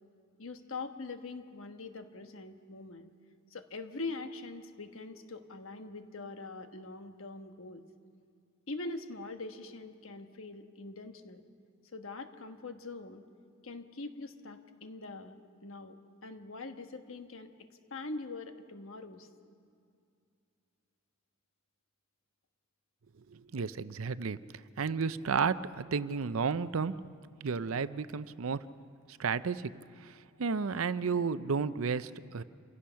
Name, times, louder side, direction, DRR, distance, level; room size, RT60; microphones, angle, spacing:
voice 1, 0.4-3.1 3.5-7.8 8.7-11.4 11.9-13.2 13.6-16.0 16.2-17.5 17.9-19.3, left 3 dB, 70° left, 7 dB, 1.3 m, -43 dB
voice 2, 23.3-24.4 24.8-27.0 27.4-28.7 29.2-29.7 30.0-32.4, right 5 dB, 75° right, 15 dB, 0.6 m, -32 dB
27.5 x 16.5 x 5.7 m, 2.4 s
head